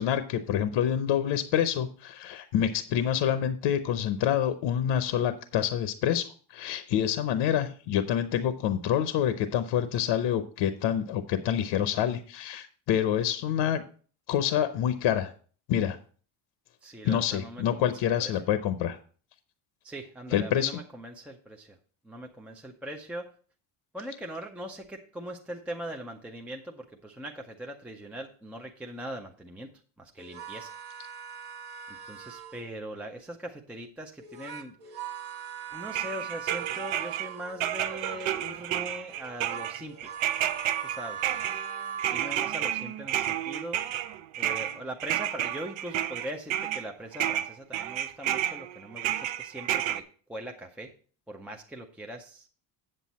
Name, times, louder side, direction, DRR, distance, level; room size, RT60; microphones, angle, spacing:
voice 1, 0.0-13.8 14.3-15.3 15.7-16.0 17.0-19.0 20.3-20.7, left 10 dB, 60° left, 10 dB, 0.8 m, -27 dB
voice 2, 16.8-17.9 18.2-18.4 19.8-21.8 22.0-23.3 23.9-29.7 30.0-30.8 31.9-35.1 35.7-40.2 40.8-41.3 42.1-43.8 44.4-50.0 50.3-50.9 51.3-52.5, right 1 dB, 5° right, 2 dB, 0.4 m, -41 dB
sound 1, 30.2-32.8 34.2-37.9 39.1-42.7, right 7 dB, 50° right, 1.2 m, -40 dB
sound 2, 35.9-37.3 37.6-46.9 47.1-50.0, right 12 dB, 70° right, 0.7 m, -31 dB
8.0 x 7.7 x 4.1 m, 0.41 s
cardioid pair, 160°, 49 cm